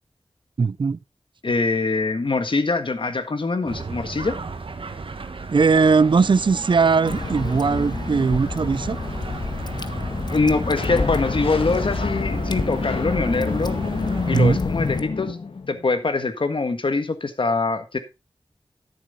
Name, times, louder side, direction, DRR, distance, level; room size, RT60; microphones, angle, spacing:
voice 1, 0.6-1.0 5.5-9.0 14.3-14.6, right 4 dB, 60° right, 0.5 m, -19 dB
voice 2, 1.4-4.4 10.3-13.8 14.3-15.4 15.7-18.0, left 3 dB, 70° left, 1.5 m, -23 dB
sound 1, 3.7-14.5, right 4 dB, 75° right, 1.5 m, -35 dB
Water / Drip, 7.1-15.0, left 3 dB, 50° left, 0.9 m, -29 dB
sound 2, 10.8-15.9, left 4 dB, 90° left, 1.6 m, -29 dB
12.5 x 7.2 x 4.1 m
wide cardioid pair, 60°, 9 cm